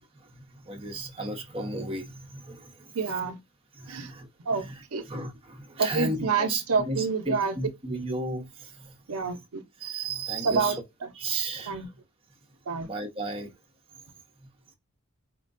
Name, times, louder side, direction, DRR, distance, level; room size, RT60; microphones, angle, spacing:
voice 1, 0.7-2.7 3.8-4.3 4.6-4.7 5.1-8.7 9.8-10.8 11.2-11.8 12.8-13.5, right 2 dB, 25° right, 0.8 m, -34 dB
voice 2, 2.9-3.4 3.9-4.1 4.4-5.0 5.8-7.6 9.1-9.6 10.4-11.1 11.7-11.9 12.7-12.9, right 5 dB, 80° right, 0.6 m, -28 dB
4.4 x 2.1 x 2.4 m
head